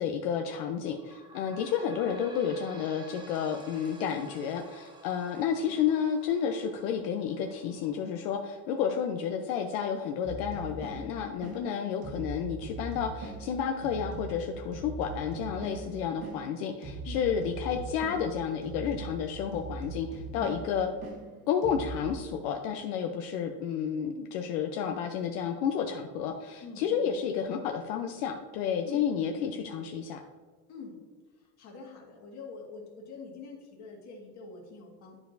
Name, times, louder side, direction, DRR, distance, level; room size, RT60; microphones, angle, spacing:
voice 1, 0.0-20.9 21.5-30.2, left 7 dB, 70° left, 4 dB, 0.7 m, -31 dB
sound 1, 0.9-14.0 14.6-14.7 15.0-15.1 15.9-16.0, right 1 dB, 10° right, 0.7 m, -54 dB
sound 2, 10.2-22.1, right 3 dB, 45° right, 1.3 m, -41 dB
voice 2, 26.6-27.1 28.8-29.0 30.7-31.0 31.3-35.2, left 4 dB, 35° left, -1 dB, 1.8 m, -45 dB
10.5 x 4.7 x 2.6 m, 1.4 s
cardioid pair, 160°, 46 cm